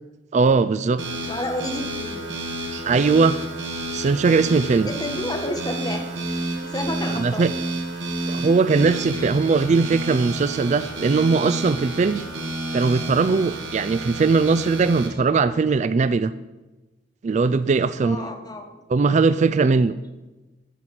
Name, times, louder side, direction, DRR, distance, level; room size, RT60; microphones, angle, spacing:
voice 1, 0.3-1.0 2.7-3.4 3.9-4.9 7.1-7.5 8.3-12.2 12.7-16.3 17.2-18.2 18.9-19.9, right 4 dB, 40° right, 15 dB, 0.3 m, -20 dB
sound 1, 1.0-15.1, right 1 dB, 80° right, 2.0 m, -30 dB
voice 2, 1.3-2.3 4.8-6.3 6.6-7.5 18.0-18.7, left 1 dB, 20° left, 4 dB, 1.4 m, -30 dB
14.0 x 6.0 x 7.4 m, 1.1 s
head